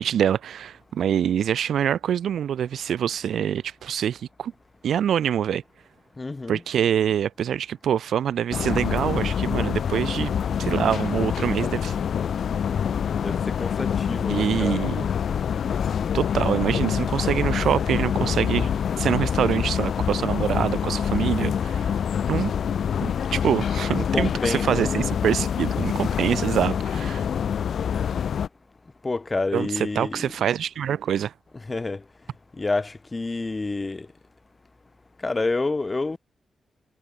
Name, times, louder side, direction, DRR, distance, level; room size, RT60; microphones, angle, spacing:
voice 1, 0.0-4.5 4.8-5.6 6.5-10.3 10.6-11.9 14.3-15.1 16.1-18.7 19.0-21.9 22.3-22.5 23.0-27.2 29.5-31.3, right 9 dB, 75° right, 5.3 m, -25 dB
voice 2, 6.2-6.6 13.2-14.9 23.9-25.0 29.0-30.3 31.7-32.0 32.6-34.1 35.2-36.2, left 3 dB, 20° left, 3.2 m, -28 dB
sound 1, 8.5-28.5, left 8 dB, 60° left, 1.5 m, -26 dB
wide cardioid pair, 175°, 0 cm